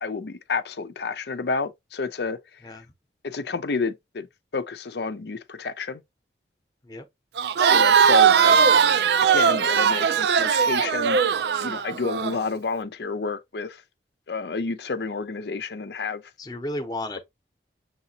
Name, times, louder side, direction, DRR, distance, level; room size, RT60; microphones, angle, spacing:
voice 1, 0.0-2.4 3.2-4.3 4.5-6.0 7.7-8.7 9.3-11.2 11.6-13.8 14.3-16.2, left 4 dB, 70° left, 0.6 m, -30 dB
Crowd, 7.4-12.3, right 7 dB, 70° right, 0.4 m, -19 dB
voice 2, 16.4-17.2, left 1 dB, 20° left, 0.8 m, -33 dB
6.6 x 2.8 x 2.7 m
head